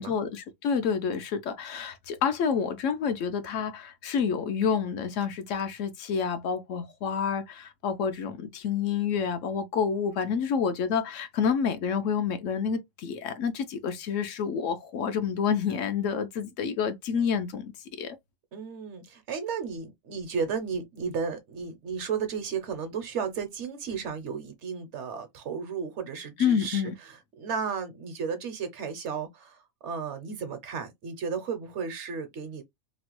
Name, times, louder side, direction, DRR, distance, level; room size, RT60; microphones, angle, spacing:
voice 1, 0.0-17.7 18.0-18.2 26.4-26.9, left 6 dB, 75° left, 0.9 m, -28 dB
voice 2, 18.5-32.6, right 6 dB, 65° right, 0.9 m, -34 dB
3.0 x 2.1 x 2.9 m
omnidirectional pair, 1.4 m